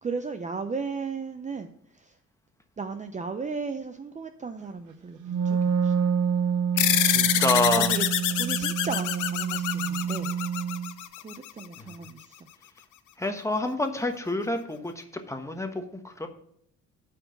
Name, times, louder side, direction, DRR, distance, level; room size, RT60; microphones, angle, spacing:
voice 1, 0.0-2.2 2.8-5.9 7.7-8.0 8.3-10.3 11.2-12.5, right 4 dB, 25° right, 8 dB, 0.6 m, -35 dB
Wind instrument woodwind instrument, 5.2-10.9, right 7 dB, 85° right, 0.8 m, -27 dB
sound 1, 6.8-11.6, left 12 dB, 80° left, 0.7 m, -26 dB
voice 2, 6.9-7.9 13.2-16.3, left 2 dB, 10° left, 6 dB, 1.2 m, -28 dB
8.4 x 4.6 x 6.8 m, 0.70 s
cardioid pair, 90°, 30 cm